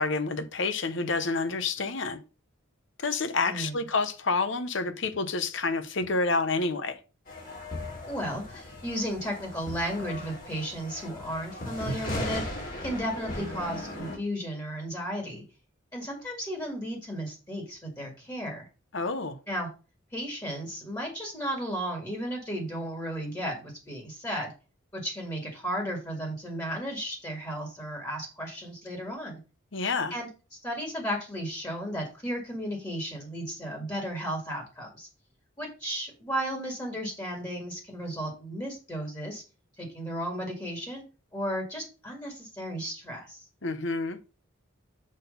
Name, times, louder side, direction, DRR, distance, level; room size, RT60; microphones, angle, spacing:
voice 1, 0.0-2.2 3.0-7.0 18.9-19.4 29.7-30.2 43.6-44.2, left 3 dB, 65° left, 0.9 m, -28 dB
sound 1, 7.3-14.2, left 1 dB, 45° left, 2.6 m, -37 dB
voice 2, 8.1-15.4 15.9-18.7 19.5-19.7 20.1-24.5 24.9-29.4 30.1-30.3 30.6-35.1 35.6-39.4 39.8-41.0 41.3-43.4, equal, 20° left, 1.9 m, -34 dB
6.4 x 4.2 x 5.3 m
head